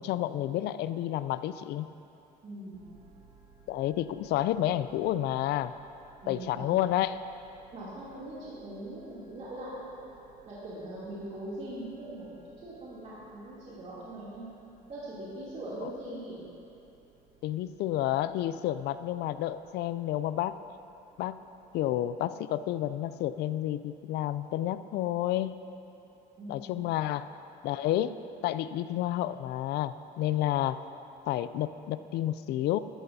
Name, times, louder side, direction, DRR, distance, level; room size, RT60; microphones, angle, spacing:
voice 1, 0.0-1.9 3.7-5.7 6.3-7.2 17.4-20.6 21.2-21.4 21.7-25.6 26.5-27.3 27.6-28.1 28.4-30.8 31.3-32.8, left 13 dB, 80° left, 13 dB, 0.4 m, -30 dB
voice 2, 2.4-2.8 6.2-6.7 7.7-10.0 10.4-12.3 12.6-14.5 14.9-16.4 26.4-26.7, right 1 dB, 45° right, -10 dB, 2.9 m, -41 dB
sound 1, 2.7-21.9, right 6 dB, 80° right, 2.7 m, -61 dB
14.0 x 13.0 x 2.8 m, 2.8 s
cardioid pair, 110°, 17 cm